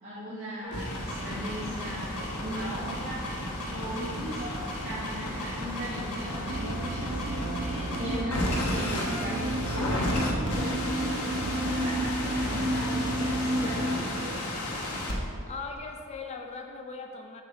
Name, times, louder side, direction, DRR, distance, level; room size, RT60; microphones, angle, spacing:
voice 1, 0.0-4.6 4.8-14.5, equal, 35° right, -13 dB, 1.8 m, -38 dB
sound 1, 0.6-15.1, left 1 dB, 90° left, 1.1 m, -33 dB
sound 2, 6.4-14.0, right 1 dB, 70° right, 0.7 m, -31 dB
voice 2, 15.5-17.4, left 4 dB, 30° left, 4 dB, 0.4 m, -39 dB
7.7 x 6.1 x 3.5 m, 2.4 s
head